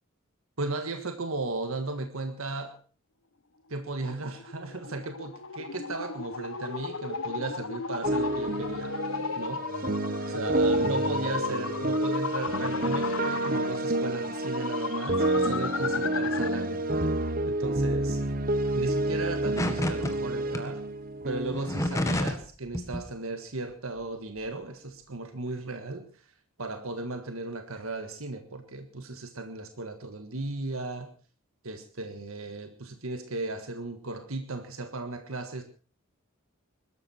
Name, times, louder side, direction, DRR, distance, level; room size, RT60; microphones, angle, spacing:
voice 1, 0.6-2.8 3.7-9.0 9.4-9.7 10.3-16.8 17.4-18.2 18.7-20.8 21.2-26.2 26.6-31.1 31.6-35.6, right 2 dB, 80° right, 7 dB, 1.7 m, -36 dB
sound 1, 4.0-16.7, left 5 dB, 70° left, 1.0 m, -35 dB
sound 2, 8.0-22.1, right 1 dB, 40° right, 1.3 m, -29 dB
sound 3, 19.6-20.1 20.5-20.6 21.5-22.5 22.7-23.0, left 1 dB, 15° left, 1.6 m, -28 dB
22.0 x 13.0 x 4.4 m, 0.37 s
head